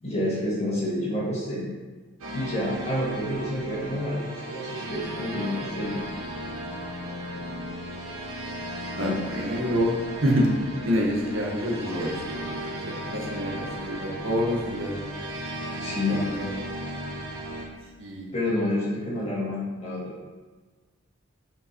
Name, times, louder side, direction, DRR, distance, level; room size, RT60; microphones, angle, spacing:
voice 1, 0.0-1.7 2.3-6.0 8.9-9.2 15.8-16.2 18.3-20.1, left 1 dB, 30° left, -6 dB, 2.4 m, -29 dB
sound 1, 2.2-17.7, equal, 90° right, 1.8 m, -35 dB
voice 2, 9.0-9.9 10.2-10.5 10.8-12.6 12.8-14.9 16.0-16.5 18.0-18.3, equal, 65° right, -1 dB, 1.6 m, -27 dB
7.9 x 5.7 x 4.6 m, 1.3 s
head